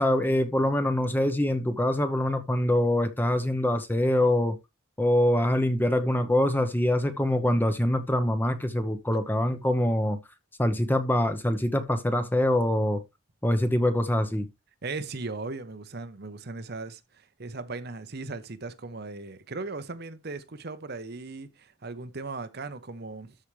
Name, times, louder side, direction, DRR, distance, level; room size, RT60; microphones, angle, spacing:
voice 1, 0.0-4.6 5.0-10.2 10.6-13.0 13.4-14.5, left 1 dB, 10° left, 0.8 m, -24 dB
voice 2, 14.8-23.4, right 3 dB, 45° right, 0.8 m, -38 dB
13.0 x 4.9 x 3.2 m
head